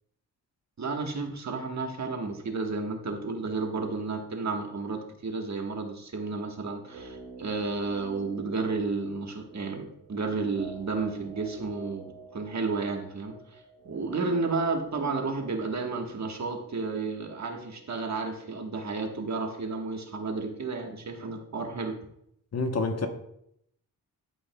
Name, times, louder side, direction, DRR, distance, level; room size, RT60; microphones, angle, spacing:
voice 1, 0.8-22.0, right 4 dB, 45° right, 1.3 m, -32 dB
sound 1, 6.8-18.9 19.2-19.3, right 3 dB, 85° right, 2.5 m, -48 dB
voice 2, 22.5-23.1, left 3 dB, 40° left, 1.0 m, -27 dB
12.5 x 5.2 x 2.2 m
cardioid pair, 70°, 38 cm